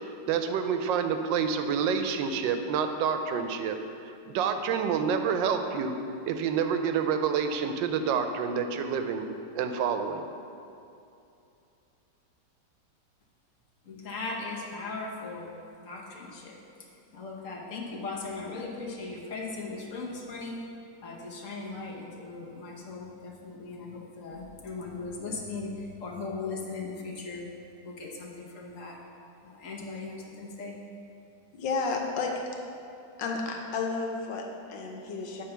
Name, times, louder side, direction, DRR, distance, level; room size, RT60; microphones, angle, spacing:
voice 1, 0.3-5.9 6.3-9.3 9.5-10.2, right 6 dB, 90° right, 7 dB, 1.3 m, -28 dB
voice 2, 13.9-15.5 15.8-16.6 17.1-20.6 21.0-27.4 27.8-29.0 29.4-30.8, left 3 dB, 50° left, -1 dB, 1.2 m, -38 dB
voice 3, 31.5-32.6 33.2-35.4, left 4 dB, 85° left, 1 dB, 1.6 m, -32 dB
9.3 x 3.4 x 6.8 m, 2.6 s
omnidirectional pair, 1.9 m